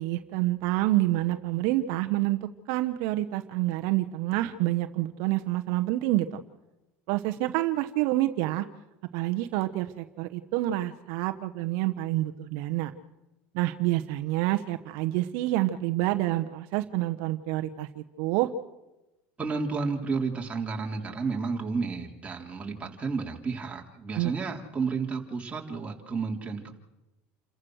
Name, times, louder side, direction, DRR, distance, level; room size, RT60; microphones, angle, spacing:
voice 1, 0.0-2.4 2.7-6.4 7.1-8.6 9.1-12.9 13.5-18.5 24.1-24.3, right 16 dB, 70° right, 7 dB, 1.1 m, -28 dB
voice 2, 19.4-26.7, right 4 dB, 20° right, 0 dB, 3.6 m, -31 dB
28.5 x 14.5 x 6.5 m, 1.0 s
supercardioid pair, 100°, 6 cm